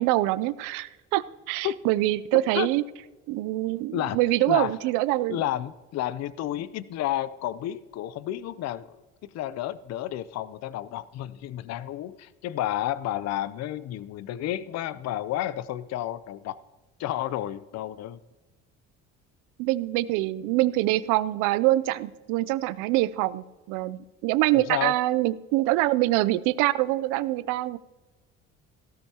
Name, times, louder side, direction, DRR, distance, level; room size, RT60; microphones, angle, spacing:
voice 1, 0.0-2.8 3.3-5.4 19.6-27.8, right 17 dB, 80° right, 17 dB, 0.5 m, -25 dB
voice 2, 2.3-2.7 3.9-4.2 4.5-4.8 5.3-16.6 17.0-18.2 24.5-24.9, left 13 dB, 60° left, 17 dB, 0.6 m, -31 dB
16.0 x 13.0 x 2.9 m, 1.2 s
supercardioid pair, 85°, 30 cm